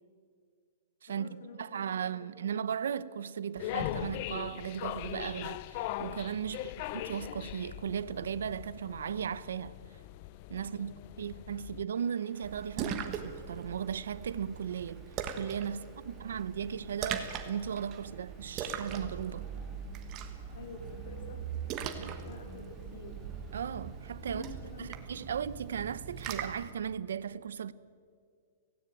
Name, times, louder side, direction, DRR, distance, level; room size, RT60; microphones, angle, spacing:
voice 1, 1.1-2.4 6.5-6.9 10.6-11.2 15.7-16.2 20.5-23.2 24.2-25.0, left 5 dB, 60° left, 2.9 m, -50 dB
voice 2, 1.6-9.8 10.5-15.0 15.3-19.5 22.0-22.2 23.5-24.4 24.8-27.7, right 8 dB, 90° right, 0.8 m, -36 dB
sound 1, 3.6-11.8, left 14 dB, 30° left, 0.4 m, -40 dB
sound 2, 11.9-25.0, equal, 5° left, 2.3 m, -63 dB
Splash splatter, 12.4-26.7, right 7 dB, 20° right, 1.2 m, -40 dB
17.0 x 17.0 x 9.1 m
hypercardioid pair, 180°, 0 cm